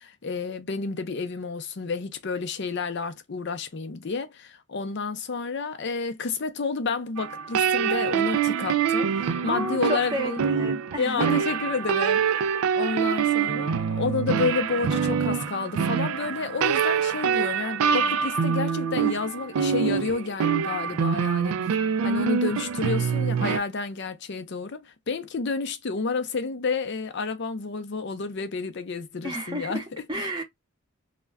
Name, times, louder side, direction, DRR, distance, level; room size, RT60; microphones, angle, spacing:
voice 1, 0.0-10.4 11.0-21.6 22.0-29.8 30.2-30.4, left 4 dB, 50° left, 0.5 m, -30 dB
sound 1, 7.2-23.6, right 7 dB, 80° right, 0.3 m, -25 dB
voice 2, 9.5-11.4 29.2-30.4, right 1 dB, 20° right, 0.8 m, -31 dB
2.3 x 2.1 x 3.3 m
head